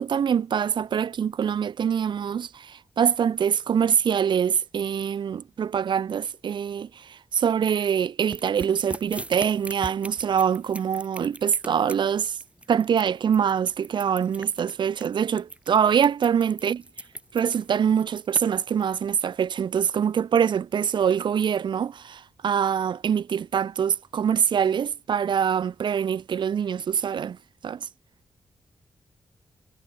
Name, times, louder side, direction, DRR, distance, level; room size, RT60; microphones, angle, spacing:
voice 1, 0.0-12.4 12.7-16.8 17.3-27.4 27.6-27.9, right 8 dB, 70° right, 1.1 m, -24 dB
sound 1, 8.3-19.0, right 1 dB, 15° right, 4.7 m, -40 dB
cardioid pair, 90°, 8 cm